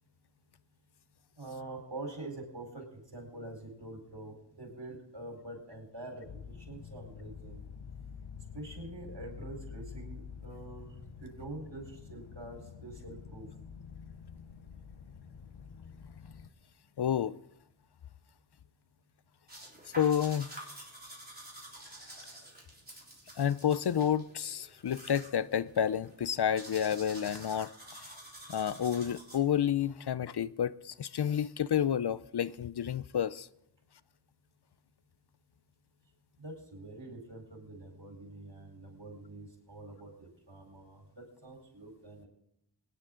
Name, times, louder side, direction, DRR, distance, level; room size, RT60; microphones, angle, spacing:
voice 1, 1.4-7.6 8.5-10.9 11.2-13.5 36.4-42.3, right 2 dB, 70° right, 4.3 m, -45 dB
sound 1, 6.2-16.5, left 6 dB, 90° left, 0.9 m, -48 dB
voice 2, 17.0-17.4 20.0-20.5 23.4-28.2 28.5-33.5, left 9 dB, 60° left, 0.5 m, -30 dB
sound 2, 19.5-29.7, right 1 dB, 20° right, 3.8 m, -49 dB
23.0 x 10.5 x 3.8 m
wide cardioid pair, 45°, 45 cm